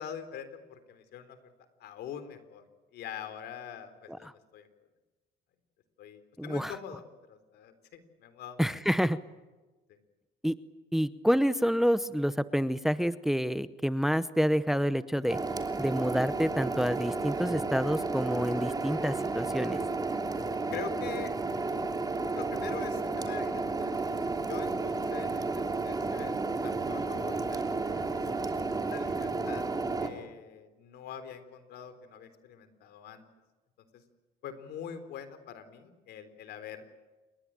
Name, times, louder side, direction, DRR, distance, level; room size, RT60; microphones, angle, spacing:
voice 1, 0.0-1.4 1.8-2.6 2.9-4.7 6.0-7.0 7.3-8.6 20.7-21.3 21.7-21.8 22.3-23.9 24.3-29.6 30.0-33.2 33.9-34.0 34.4-36.9, left 8 dB, 75° left, 10 dB, 3.8 m, -44 dB
voice 2, 6.4-6.8 8.6-9.2 10.4-10.6 10.9-15.4 15.8-19.8, equal, ahead, 14 dB, 0.8 m, -28 dB
sound 1, 15.3-30.1, right 3 dB, 20° right, 3.2 m, -32 dB
28.5 x 23.0 x 8.9 m, 1.2 s
cardioid pair, 110°, 17 cm